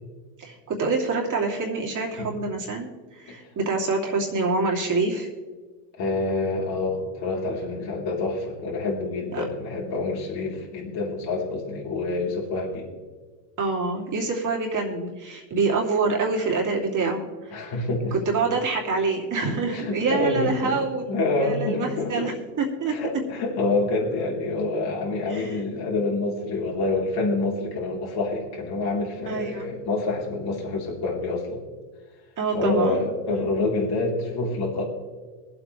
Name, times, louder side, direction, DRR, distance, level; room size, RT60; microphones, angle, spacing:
voice 1, 0.4-5.3 9.3-9.4 13.6-17.5 18.1-21.1 21.4-23.0 25.3-25.6 29.2-29.7 32.4-33.5, right 4 dB, 40° right, -1 dB, 2.9 m, -26 dB
voice 2, 6.0-12.9 17.5-18.1 19.7-20.8 21.1-22.3 22.9-31.6 32.5-34.8, left 2 dB, 50° left, -3 dB, 3.7 m, -27 dB
22.5 x 8.1 x 3.3 m, 1.4 s
supercardioid pair, 105°, 50 cm